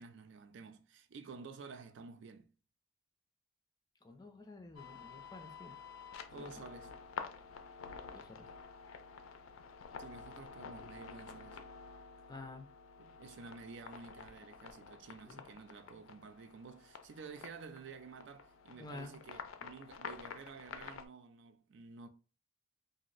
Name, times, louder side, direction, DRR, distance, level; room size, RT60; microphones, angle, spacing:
voice 1, 0.0-2.5 6.3-7.0 10.0-11.6 13.0-22.1, right 5 dB, 65° right, 0.3 m, -51 dB
voice 2, 4.0-5.7 6.4-6.5 8.1-8.5 12.3-12.7 15.3-15.4 18.8-19.2, left 2 dB, 20° left, 0.4 m, -50 dB
sound 1, 4.8-21.1, left 6 dB, 90° left, 0.4 m, -50 dB
2.5 x 2.0 x 3.8 m
head